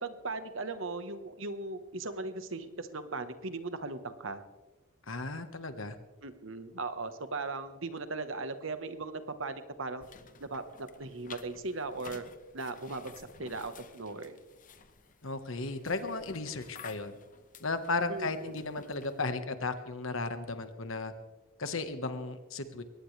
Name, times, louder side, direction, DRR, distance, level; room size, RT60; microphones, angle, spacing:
voice 1, 0.0-4.4 6.2-10.0 10.4-12.2 12.5-14.4 18.1-18.6, right 3 dB, 65° right, 10 dB, 1.3 m, -38 dB
voice 2, 5.1-6.0 15.2-17.2 17.6-21.1 21.6-22.8, left 3 dB, 70° left, 9 dB, 1.5 m, -35 dB
sound 1, 10.0-19.3, left 5 dB, 40° left, 1.0 m, -53 dB
22.5 x 18.5 x 3.4 m, 1.2 s
head